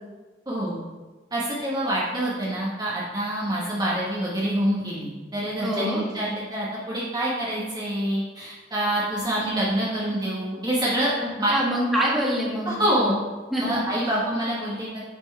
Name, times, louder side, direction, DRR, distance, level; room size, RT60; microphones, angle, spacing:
voice 1, 0.5-0.8 1.3-11.5 12.6-13.2 13.6-15.0, right 1 dB, 25° right, -6 dB, 1.4 m, -26 dB
voice 2, 5.6-6.0 11.5-13.1 13.5-13.8, equal, ahead, -6 dB, 1.8 m, -25 dB
8.9 x 4.5 x 4.2 m, 1.3 s
head